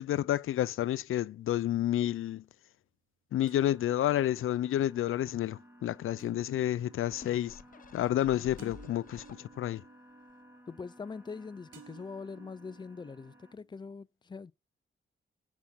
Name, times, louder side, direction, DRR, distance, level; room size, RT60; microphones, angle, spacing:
voice 1, 0.0-2.4 3.3-7.6 7.9-9.8, left 12 dB, 85° left, 0.4 m, -30 dB
sound 1, 1.0-1.8 3.5-11.4 11.7-13.8, right 7 dB, 75° right, 2.4 m, -58 dB
sound 2, 3.4-13.5, equal, 10° right, 2.6 m, -57 dB
sound 3, 7.1-9.8 10.3-10.4, left 6 dB, 40° left, 0.9 m, -51 dB
voice 2, 10.7-14.5, left 4 dB, 20° left, 0.5 m, -43 dB
10.0 x 5.7 x 5.9 m
wide cardioid pair, 115°, 21 cm